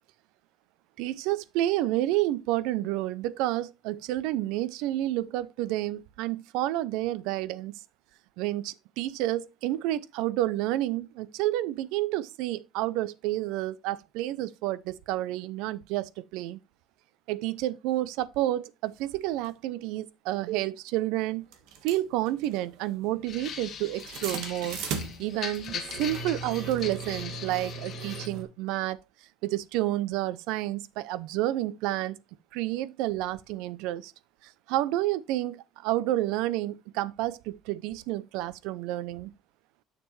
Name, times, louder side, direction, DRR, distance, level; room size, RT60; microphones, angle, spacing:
voice 1, 1.0-7.7 8.4-16.6 17.3-21.5 21.8-24.8 25.2-29.0 29.4-32.2 32.5-34.1 34.4-39.3, right 15 dB, 90° right, 0.4 m, -30 dB
sound 1, 19.4-19.5 20.5-20.6 21.5-28.4, right 6 dB, 70° right, 1.4 m, -38 dB
sound 2, 23.3-28.3, left 7 dB, 35° left, 1.1 m, -40 dB
6.8 x 6.7 x 3.1 m
cardioid pair, 175°, 0 cm